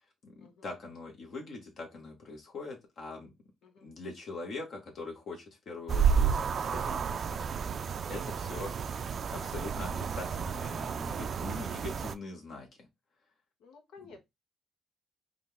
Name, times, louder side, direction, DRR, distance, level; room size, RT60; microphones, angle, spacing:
voice 1, 0.2-3.3 3.8-7.4 8.1-8.7 9.3-12.9, left 3 dB, 60° left, 1.2 m, -42 dB
sound 1, 5.9-12.1, right 6 dB, 50° right, 0.3 m, -31 dB
voice 2, 8.2-8.5 13.6-14.2, left 4 dB, 85° left, 0.9 m, -54 dB
3.9 x 2.4 x 3.3 m
cardioid pair, 90°, 0 cm